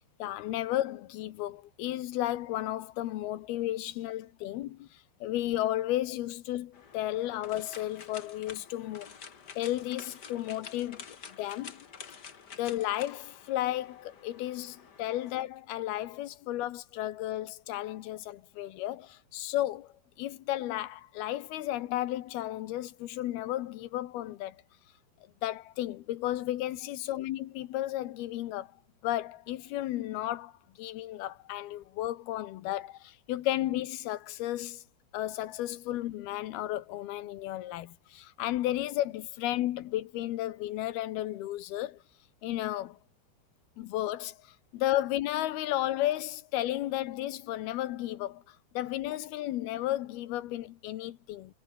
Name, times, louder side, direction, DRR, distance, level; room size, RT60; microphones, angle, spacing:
voice 1, 0.2-4.9 5.2-9.2 9.6-11.0 11.4-11.8 12.6-24.6 25.4-28.7 29.0-30.5 30.8-34.8 35.1-42.0 42.4-43.0 43.8-51.5, left 14 dB, 70° left, 2.8 m, -33 dB
sound 1, 6.7-15.4, left 6 dB, 90° left, 0.9 m, -49 dB
omnidirectional pair, 5.1 m